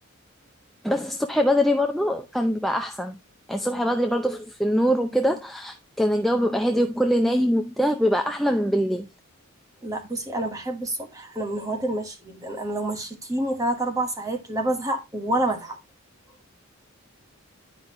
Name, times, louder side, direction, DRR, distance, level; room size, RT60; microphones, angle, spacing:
voice 1, 0.8-3.2 3.5-9.1, equal, ahead, 0.5 m, -23 dB
voice 2, 9.8-15.8, right 1 dB, 15° right, 1.3 m, -28 dB
10.5 x 5.3 x 3.1 m
head